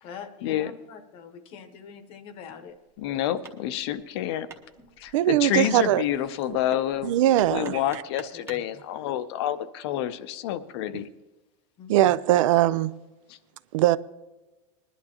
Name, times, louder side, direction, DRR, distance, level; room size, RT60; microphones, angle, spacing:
voice 1, 0.0-2.8 4.8-5.2 8.3-8.8 11.8-12.2, left 6 dB, 35° left, 0.9 m, -44 dB
Hammer, 2.7-8.7, right 4 dB, 15° right, 0.8 m, -49 dB
voice 2, 3.0-4.5 5.0-11.1 13.3-13.4, left 11 dB, 55° left, 0.6 m, -28 dB
voice 3, 5.1-6.0 7.0-7.8 11.9-12.9 13.7-14.0, right 14 dB, 75° right, 0.5 m, -20 dB
20.5 x 11.0 x 2.9 m
supercardioid pair, 165°, 17 cm